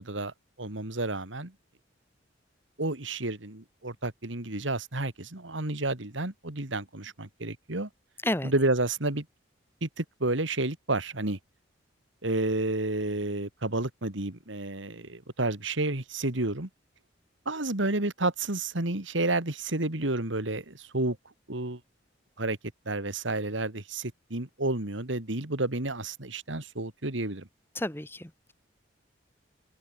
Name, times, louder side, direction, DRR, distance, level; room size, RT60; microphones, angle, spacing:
voice 1, 0.0-1.5 2.8-7.9 8.4-9.3 9.8-11.4 12.2-16.7 17.5-21.2 21.5-21.8 22.4-22.6 22.9-27.5, right 2 dB, 80° right, 2.6 m, -30 dB
voice 2, 27.8-28.5, left 1 dB, 10° left, 2.1 m, -31 dB
head